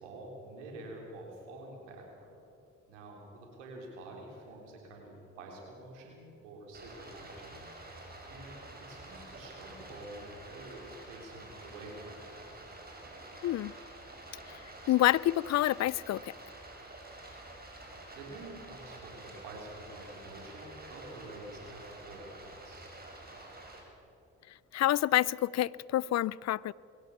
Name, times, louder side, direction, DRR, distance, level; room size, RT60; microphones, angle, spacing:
voice 1, 0.0-2.3 2.9-7.6 8.3-8.6 8.9-12.5 18.1-23.0, right 2 dB, 90° right, 4.0 m, -48 dB
Stream, 6.7-23.8, right 2 dB, 25° right, 6.3 m, -49 dB
voice 2, 14.9-16.3 24.7-26.7, left 14 dB, 50° left, 0.5 m, -28 dB
21.5 x 17.5 x 7.2 m
hypercardioid pair, 50°, 35 cm